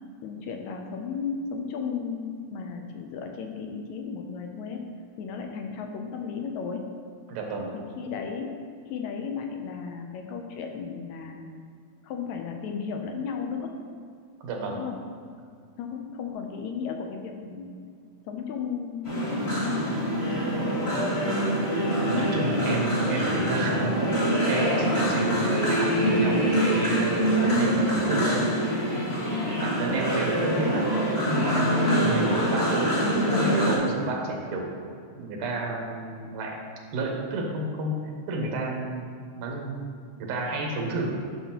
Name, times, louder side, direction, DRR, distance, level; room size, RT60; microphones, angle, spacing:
voice 1, 0.2-4.8 5.2-6.9 8.0-8.6 8.9-11.5 12.0-13.7 14.7-15.0 15.8-17.7 18.2-20.0 22.1-22.3 29.3-29.6, left 6 dB, 80° left, 3 dB, 1.8 m, -34 dB
voice 2, 7.3-7.8 14.4-14.8 22.0-24.0 24.5-28.4 29.6-30.9 31.3-31.7 32.0-34.7 35.1-36.6 36.9-39.8 40.2-41.2, right 2 dB, 90° right, 1 dB, 2.5 m, -31 dB
sound 1, 19.0-33.8, equal, 40° left, 0.4 m, -24 dB
9.1 x 5.8 x 2.9 m, 2.3 s
omnidirectional pair, 3.5 m